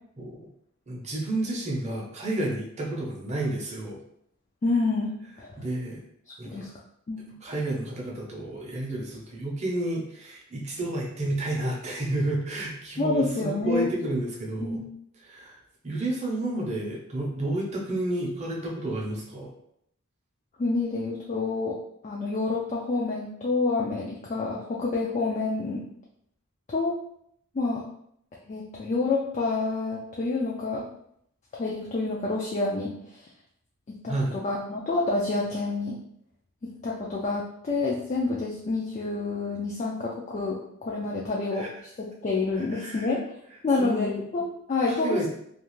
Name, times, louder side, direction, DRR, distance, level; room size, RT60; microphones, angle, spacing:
voice 1, 0.9-4.0 5.6-6.0 6.4-6.7 7.4-14.8 15.2-15.6 15.8-19.5 34.1-34.4 41.5-41.7 42.6-43.2 43.8-44.2 44.9-45.3, right 1 dB, 30° right, -3 dB, 0.6 m, -31 dB
voice 2, 4.6-5.6 6.3-6.7 7.1-7.3 13.0-13.9 14.6-14.9 20.6-21.8 22.0-25.9 26.7-27.0 27.5-27.8 28.5-30.9 31.5-32.9 33.9-34.1 34.4-36.0 36.6-41.6 42.0-43.2 43.6-45.3, left 3 dB, 30° left, -3 dB, 0.3 m, -28 dB
2.4 x 2.3 x 3.0 m, 0.71 s
head